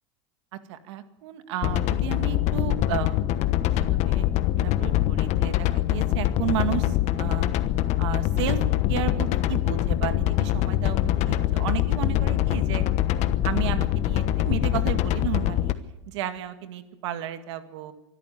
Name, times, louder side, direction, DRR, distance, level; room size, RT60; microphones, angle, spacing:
voice 1, 0.5-3.2 3.5-4.3 4.6-7.5 8.0-8.6 8.9-12.8 13.4-15.7 16.1-17.9, right 11 dB, 75° right, 8 dB, 2.0 m, -33 dB
sound 1, 1.6-15.7, left 13 dB, 50° left, 1.2 m, -24 dB
23.5 x 13.0 x 9.1 m, 0.96 s
supercardioid pair, 115°, 15 cm